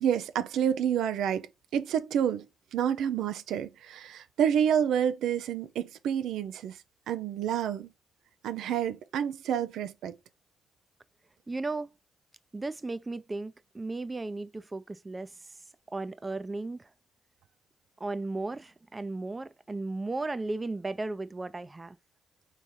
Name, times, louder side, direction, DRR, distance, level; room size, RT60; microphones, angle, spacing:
voice 1, 0.0-1.5 1.7-2.5 2.7-6.8 7.1-7.9 8.4-10.1, right 9 dB, 85° right, 0.3 m, -28 dB
voice 2, 11.5-11.9 12.5-15.3 15.9-16.9 18.0-22.0, right 2 dB, 30° right, 0.5 m, -35 dB
3.5 x 3.1 x 4.0 m
supercardioid pair, 55°, 0 cm